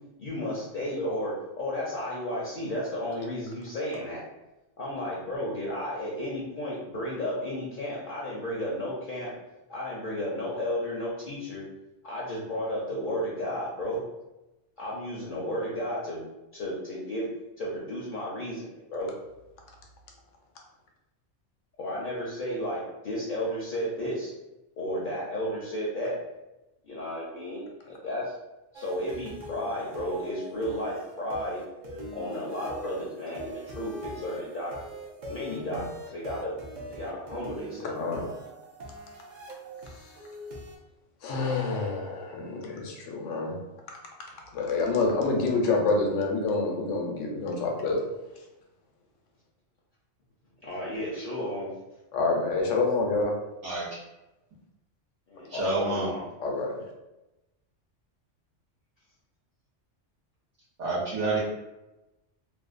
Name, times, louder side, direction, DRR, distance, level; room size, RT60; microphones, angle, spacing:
voice 1, 0.2-4.2 4.8-9.3 9.7-11.6 12.0-14.0 14.8-16.2 16.5-17.3 17.6-19.1 21.8-24.3 24.8-26.1 26.8-28.3 28.7-31.6 32.1-34.7 35.3-36.5 36.9-38.0 50.6-51.7 55.3-56.3, equal, 55° left, -5 dB, 0.6 m, -33 dB
sound 1, 28.7-40.7, right 1 dB, 60° right, 0.5 m, -42 dB
voice 2, 35.5-35.8 37.8-38.2 41.2-43.6 44.5-48.0 52.1-53.4 55.5-55.6 56.4-56.7, left 3 dB, 90° left, 1 dB, 1.0 m, -27 dB
voice 3, 55.5-56.1 60.8-61.4, right 2 dB, 80° right, -5 dB, 1.0 m, -28 dB
2.6 x 2.2 x 2.4 m, 0.98 s
omnidirectional pair, 1.2 m